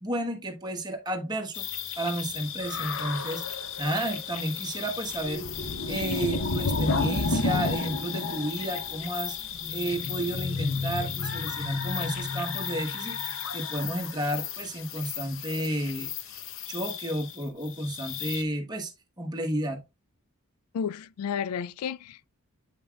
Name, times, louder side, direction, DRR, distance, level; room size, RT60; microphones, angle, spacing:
voice 1, 0.0-3.5 3.8-9.4 9.7-16.4 16.7-18.9 19.2-19.8, right 1 dB, 20° right, 1.1 m, -32 dB
sound 1, 1.5-18.4, left 4 dB, 65° left, 0.7 m, -32 dB
voice 2, 20.7-22.3, left 7 dB, 85° left, 0.3 m, -32 dB
8.3 x 5.5 x 2.3 m
head